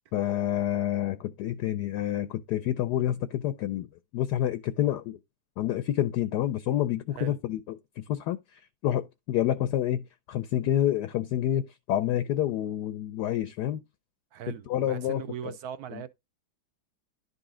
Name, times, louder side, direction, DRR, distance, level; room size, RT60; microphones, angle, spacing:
voice 1, 0.1-3.9 4.1-5.2 5.6-13.8 14.7-15.2 15.9-16.0, left 12 dB, 75° left, 1.0 m, -28 dB
voice 2, 14.3-16.1, right 10 dB, 70° right, 0.9 m, -39 dB
11.0 x 4.0 x 3.7 m
omnidirectional pair, 2.1 m